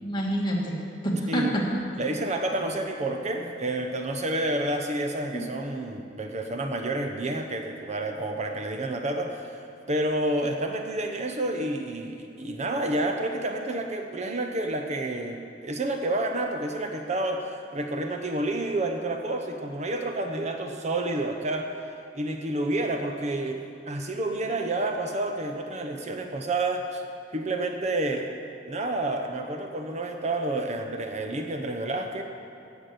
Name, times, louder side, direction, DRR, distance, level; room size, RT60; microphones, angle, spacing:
voice 1, 0.0-1.6 5.3-5.5, right 1 dB, 25° left, -3 dB, 2.0 m, -28 dB
voice 2, 2.0-21.7 22.1-27.1 27.3-28.3 28.7-32.2, right 1 dB, 35° right, 4 dB, 0.8 m, -29 dB
16.5 x 7.1 x 6.7 m, 2.7 s
head